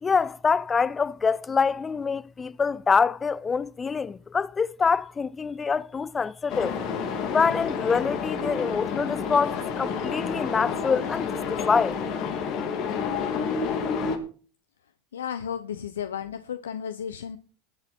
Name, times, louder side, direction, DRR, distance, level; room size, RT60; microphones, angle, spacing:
voice 1, 0.0-6.8 7.3-12.0, left 5 dB, 25° left, 0.6 m, -25 dB
sound 1, 6.5-14.2, left 6 dB, 55° left, 3.0 m, -29 dB
voice 2, 15.1-17.4, left 8 dB, 85° left, 0.7 m, -33 dB
20.5 x 7.0 x 4.5 m
hypercardioid pair, 80°, 0 cm